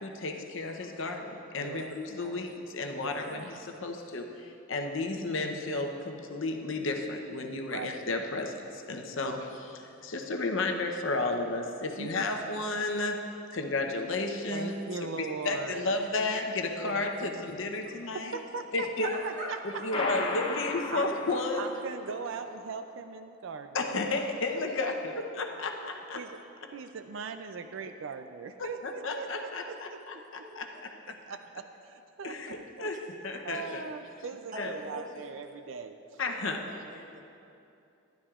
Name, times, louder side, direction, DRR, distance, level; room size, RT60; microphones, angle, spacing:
voice 1, 0.0-9.4 9.8-13.2 13.5-14.7 15.4-18.4 18.7-19.1 19.8-21.7 23.7-26.2 28.6-30.1 30.6-30.7 32.2-33.0 33.2-33.8 34.6-34.7 36.2-36.6, left 3 dB, 65° left, 3 dB, 0.7 m, -32 dB
voice 2, 1.6-1.9 3.0-3.5 7.7-7.9 9.2-9.4 12.0-12.4 14.5-15.9 16.8-17.5 18.1-20.1 20.9-21.1 21.6-24.2 26.1-26.4 26.7-30.5 31.1-32.9 33.4-36.2, right 5 dB, 65° right, 8 dB, 0.4 m, -40 dB
voice 3, 19.0-19.9 24.5-25.1 25.6-25.7 30.4-30.8 31.1-31.2 33.5-33.7 34.5-35.2 36.4-37.2, equal, 35° right, -3 dB, 1.4 m, -43 dB
sound 1, 19.9-22.3, left 3 dB, 25° left, 0.6 m, -35 dB
12.5 x 11.5 x 2.4 m, 2.7 s
head